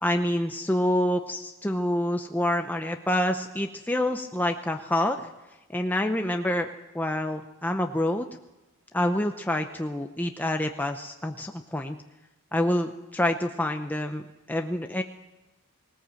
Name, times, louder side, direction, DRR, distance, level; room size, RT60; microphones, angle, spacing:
voice 1, 0.0-5.3 5.7-6.7 6.9-8.3 8.9-12.0 12.5-14.2 14.5-15.0, left 1 dB, 10° left, 5 dB, 0.7 m, -27 dB
19.0 x 19.0 x 7.6 m, 1.1 s
head